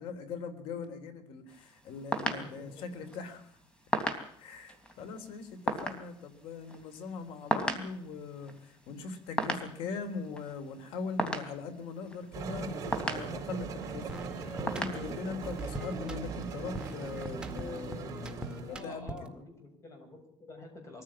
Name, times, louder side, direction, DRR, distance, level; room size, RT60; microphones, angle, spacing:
voice 1, 0.0-3.5 4.4-14.2 14.6-19.1, left 4 dB, 75° left, 10 dB, 3.4 m, -41 dB
sound 1, 1.5-18.0, equal, 10° left, 3.1 m, -39 dB
voice 2, 2.3-2.8 18.7-21.0, left 2 dB, 30° left, 5 dB, 7.3 m, -48 dB
sound 2, 12.3-18.8, right 5 dB, 35° right, 4.2 m, -40 dB
sound 3, 14.1-19.4, right 2 dB, 10° right, 1.8 m, -42 dB
22.5 x 15.0 x 8.7 m, 0.69 s
cardioid pair, 140°, 9 cm